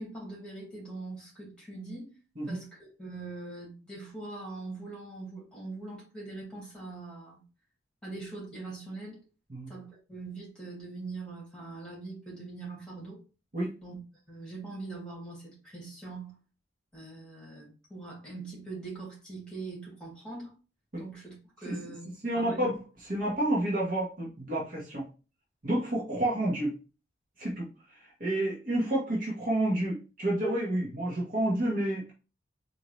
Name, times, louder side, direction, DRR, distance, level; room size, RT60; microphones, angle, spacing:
voice 1, 0.0-2.1 2.4-7.4 8.0-9.2 9.7-13.2 13.8-14.0 14.3-16.3 16.9-20.5 21.0-22.1 22.3-22.7, right 3 dB, 5° left, 2.3 m, -42 dB
voice 2, 22.2-22.8 23.1-25.0 25.6-26.7 27.4-27.7 28.0-32.1, right 1 dB, 45° right, 1.1 m, -29 dB
4.3 x 2.7 x 3.1 m
head